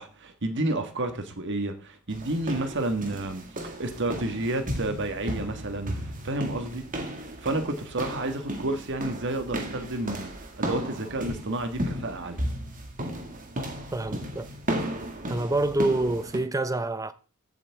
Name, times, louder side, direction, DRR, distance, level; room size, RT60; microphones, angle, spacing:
voice 1, 0.0-6.8 7.4-10.3 10.6-12.4, right 2 dB, 55° right, 1.6 m, -30 dB
sound 1, 2.1-16.4, right 1 dB, 40° right, 2.0 m, -34 dB
voice 2, 13.9-14.5 15.3-17.1, right 2 dB, 15° right, 0.6 m, -27 dB
15.5 x 8.4 x 3.5 m
head